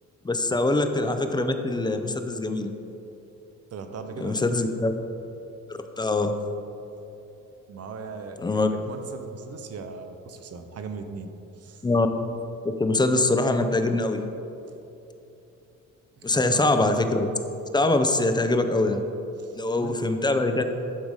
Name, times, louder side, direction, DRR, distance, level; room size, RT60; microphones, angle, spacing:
voice 1, 0.2-2.7 4.2-4.9 6.0-6.3 8.4-8.7 11.8-12.1 12.6-14.2 16.2-17.3 17.7-19.0 19.5-20.6, left 2 dB, 15° left, 7 dB, 0.5 m, -23 dB
voice 2, 3.7-4.4 7.7-11.8 16.2-16.6 19.4-20.0, right 4 dB, 55° right, 7 dB, 0.8 m, -39 dB
10.5 x 4.0 x 4.9 m, 2.8 s
cardioid pair, 90°, 30 cm